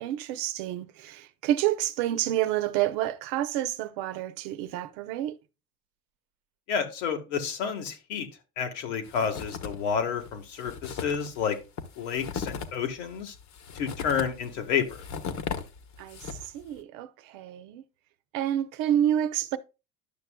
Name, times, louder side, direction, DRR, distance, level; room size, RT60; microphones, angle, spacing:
voice 1, 0.0-5.4 16.0-17.8 18.3-19.6, right 12 dB, 75° right, 0.8 m, -29 dB
voice 2, 6.7-8.3 8.6-11.6 12.0-13.3 13.7-15.0, left 7 dB, 90° left, 1.6 m, -30 dB
sound 1, 9.0-9.9 10.2-10.3 10.6-16.6, left 6 dB, 50° left, 1.1 m, -37 dB
11.0 x 6.1 x 2.2 m
supercardioid pair, 90°, 35 cm